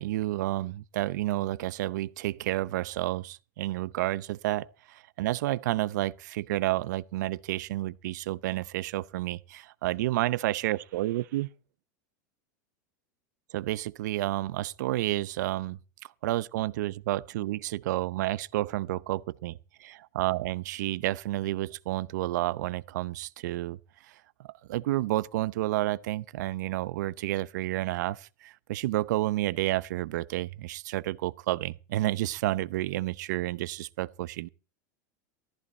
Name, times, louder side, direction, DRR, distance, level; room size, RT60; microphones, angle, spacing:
voice 1, 0.0-11.5 13.5-15.8 16.2-23.8 24.1-24.2 24.7-34.5, right 16 dB, 75° right, 0.6 m, -30 dB
15.0 x 14.0 x 4.3 m
supercardioid pair, 150°, 10 cm